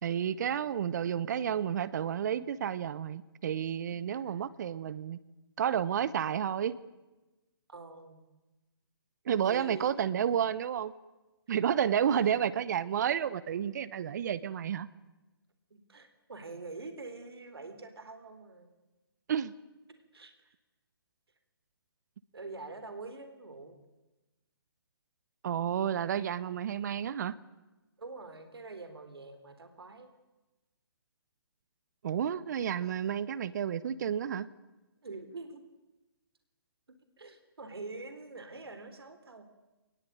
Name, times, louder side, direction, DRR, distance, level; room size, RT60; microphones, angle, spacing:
voice 1, 0.0-5.2 5.6-6.8 9.2-10.9 11.5-14.9 19.3-19.5 25.4-27.3 32.0-34.5, right 9 dB, 45° right, 18 dB, 1.1 m, -31 dB
voice 2, 3.9-4.5 7.7-8.2 9.4-9.9 12.0-12.3 15.7-18.7 20.1-20.5 22.3-23.8 28.0-30.1 35.0-35.6 37.2-39.4, right 3 dB, 80° right, 9 dB, 3.8 m, -45 dB
23.5 x 20.5 x 9.4 m, 1.1 s
hypercardioid pair, 145°, 13 cm